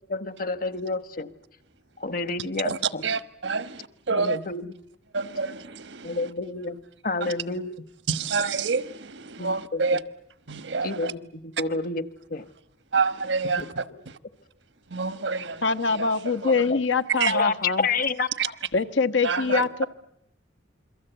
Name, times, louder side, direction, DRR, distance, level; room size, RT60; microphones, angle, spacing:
voice 1, 0.1-1.3 2.0-3.0 4.1-4.7 6.0-7.7 9.4-9.8 10.8-12.0 12.3-12.5 13.6-13.7 16.7-16.8 17.3-18.3 19.6-19.7, left 3 dB, 50° left, 1.2 m, -29 dB
voice 2, 2.6-4.4 5.1-6.3 7.2-7.3 8.1-10.0 10.5-11.1 12.9-14.2 14.9-16.1 16.4-16.7 17.1-17.4 18.4-18.5 19.2-19.6, right 5 dB, 80° right, 1.2 m, -28 dB
voice 3, 15.6-17.9 18.7-19.9, left 4 dB, 90° left, 1.3 m, -24 dB
28.0 x 23.0 x 8.1 m
head